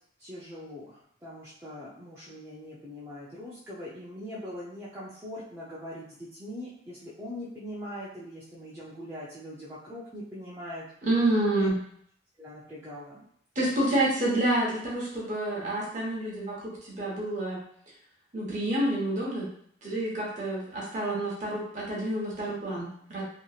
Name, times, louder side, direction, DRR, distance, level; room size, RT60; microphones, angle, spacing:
voice 1, 0.2-10.8 11.5-11.7 12.4-13.2 13.6-14.1, left 1 dB, 15° right, -9 dB, 0.5 m, -42 dB
voice 2, 11.0-11.7 13.5-17.6 18.3-19.5 19.8-23.2, right 1 dB, 40° right, -4 dB, 1.0 m, -28 dB
3.0 x 2.8 x 2.4 m, 0.66 s
head